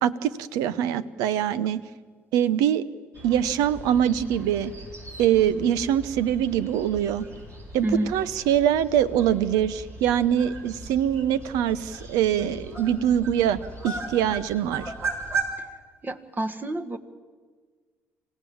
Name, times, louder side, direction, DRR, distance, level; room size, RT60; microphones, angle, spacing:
voice 1, 0.0-1.8 2.3-2.8 3.2-4.7 5.2-7.2 7.7-13.6 13.8-14.8, right 10 dB, 75° right, 17 dB, 0.9 m, -23 dB
sound 1, 3.1-15.4, right 3 dB, 50° right, 7.8 m, -37 dB
voice 2, 7.8-8.1 16.0-17.0, right 1 dB, 30° right, 10 dB, 1.8 m, -28 dB
27.0 x 16.5 x 7.3 m, 1.5 s
hypercardioid pair, 55°, 6 cm